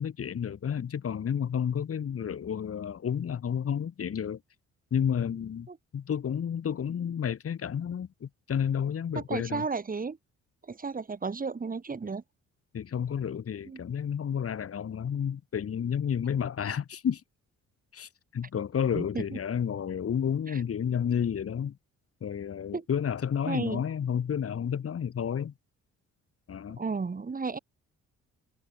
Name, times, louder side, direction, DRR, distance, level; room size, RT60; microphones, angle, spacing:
voice 1, 0.0-4.4 4.9-9.6 12.7-17.2 17.9-21.8 22.2-25.5 26.5-26.8, left 8 dB, 50° left, 2.6 m, -31 dB
voice 2, 9.1-10.2 10.6-12.2 13.7-13.8 18.9-19.4 20.5-20.6 22.7-22.8 23.5-23.8 26.8-27.6, right 4 dB, 30° right, 2.7 m, -33 dB
cardioid pair, 90°, 30 cm